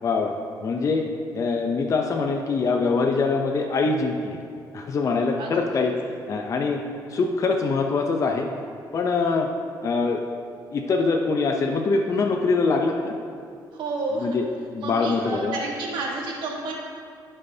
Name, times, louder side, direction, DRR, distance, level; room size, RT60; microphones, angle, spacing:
voice 1, 0.0-1.1 1.3-4.4 4.7-5.9 6.3-6.8 7.1-8.5 8.9-9.5 9.8-10.2 10.7-13.1 14.2-15.6, left 4 dB, 45° left, 2 dB, 0.6 m, -24 dB
voice 2, 13.8-14.4 14.8-16.7, right 3 dB, 80° right, -2 dB, 1.6 m, -30 dB
14.0 x 5.4 x 2.7 m, 2.3 s
cardioid pair, 110°, 8 cm